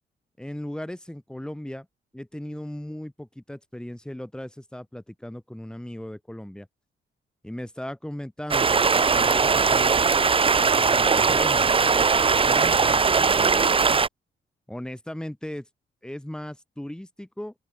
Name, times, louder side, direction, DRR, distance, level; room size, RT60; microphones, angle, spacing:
voice 1, 0.4-1.9 2.1-6.7 7.4-10.2 10.7-14.0 14.7-15.7 16.0-17.5, left 1 dB, 5° left, 5.5 m, -37 dB
Stream, 8.5-14.1, right 5 dB, 30° right, 1.1 m, -20 dB
open air
cardioid pair, 105°, 18 cm